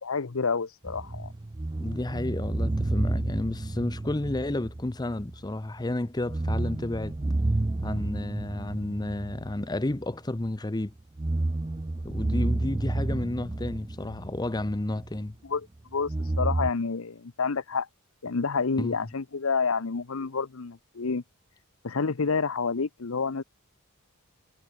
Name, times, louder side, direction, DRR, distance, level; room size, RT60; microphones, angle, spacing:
voice 1, 0.0-1.3 15.5-15.7 15.9-16.1 16.4-17.9 18.2-21.2 21.8-23.4, left 5 dB, 65° left, 0.8 m, -28 dB
sound 1, 0.8-5.5 5.8-5.9 6.2-10.5 11.0-15.3 16.0-16.7, right 2 dB, 20° right, 0.5 m, -30 dB
voice 2, 1.8-7.2 7.8-10.9 12.0-15.3 18.8-19.0, left 1 dB, 20° left, 0.6 m, -31 dB
head